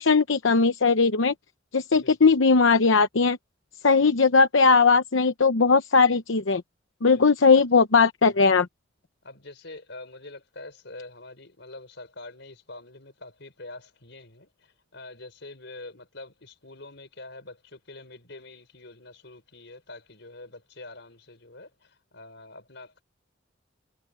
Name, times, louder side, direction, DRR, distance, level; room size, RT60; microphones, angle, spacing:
voice 1, 0.0-1.3 1.7-3.4 3.8-6.6 7.0-8.7, left 4 dB, 90° left, 0.9 m, -19 dB
voice 2, 9.2-23.0, left 2 dB, 65° left, 6.1 m, -45 dB
head